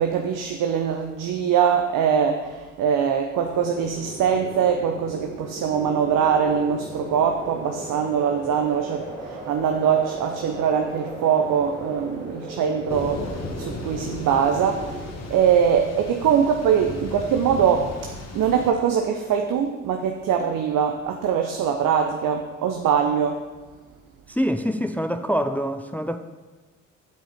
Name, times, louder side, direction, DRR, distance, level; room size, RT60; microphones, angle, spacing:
voice 1, 0.0-17.9 18.3-23.4, right 7 dB, 60° right, 0.9 m, -22 dB
sound 1, 3.4-15.0, right 2 dB, 85° right, 2.4 m, -37 dB
Thunder / Rain, 12.9-18.7, left 3 dB, 45° left, 1.5 m, -35 dB
voice 2, 24.3-26.2, equal, 5° left, 0.5 m, -25 dB
8.0 x 7.6 x 5.1 m
hypercardioid pair, 45°, 37 cm